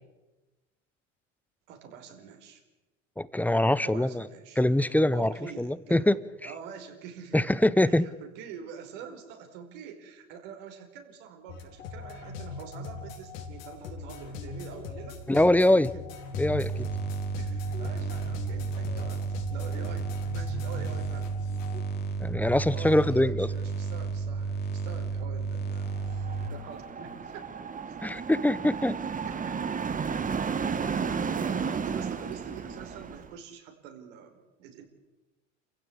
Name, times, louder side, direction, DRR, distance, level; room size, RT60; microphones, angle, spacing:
voice 1, 1.7-2.6 3.8-4.6 5.1-6.1 6.4-7.5 7.8-15.3 15.7-16.0 17.4-19.2 19.5-21.4 22.7-27.5 29.5-29.6 30.6-34.9, right 7 dB, 65° right, 4 dB, 4.8 m, -45 dB
voice 2, 3.2-4.2 4.6-6.2 7.3-8.1 15.3-15.9 16.4-16.7 22.2-23.5 28.0-29.0, left 1 dB, 5° left, 17 dB, 0.8 m, -23 dB
sound 1, 11.5-21.8, left 4 dB, 75° left, 4.2 m, -41 dB
sound 2, 16.3-26.5, right 4 dB, 25° left, 2.8 m, -32 dB
sound 3, 25.9-33.3, right 6 dB, 20° right, 1.3 m, -33 dB
29.0 x 15.5 x 8.6 m, 1.1 s
hypercardioid pair, 85°, 40 cm